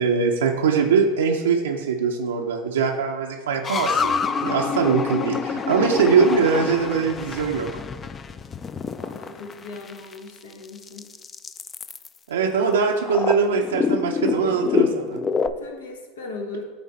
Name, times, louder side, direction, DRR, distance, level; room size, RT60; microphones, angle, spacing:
voice 1, 0.0-4.1 4.4-7.8 12.3-15.2, right 5 dB, 90° right, 1 dB, 0.5 m, -22 dB
sound 1, 3.6-10.1 10.7-12.1 13.0-15.5, left 6 dB, 25° left, 0.3 m, -27 dB
voice 2, 9.0-11.1 15.4-16.6, left 3 dB, 85° left, 2 dB, 1.1 m, -38 dB
8.6 x 3.3 x 4.2 m, 1.4 s
hypercardioid pair, 100°, 0 cm